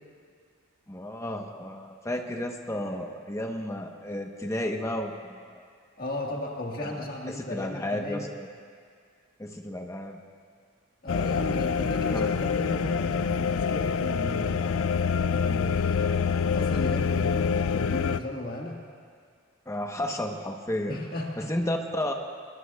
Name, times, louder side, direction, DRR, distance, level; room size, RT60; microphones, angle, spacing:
voice 1, 0.9-5.7 6.8-7.0 7.4-8.3 9.4-10.2 12.1-12.3 19.7-21.0 21.4-22.1, left 1 dB, 15° left, 3 dB, 1.0 m, -32 dB
voice 2, 6.0-8.3 11.0-16.1 16.4-18.8 20.9-21.5, left 1 dB, 45° left, -1 dB, 1.6 m, -35 dB
sound 1, 11.1-18.2, left 6 dB, 75° left, 0.4 m, -26 dB
23.0 x 21.5 x 2.4 m, 2.1 s
head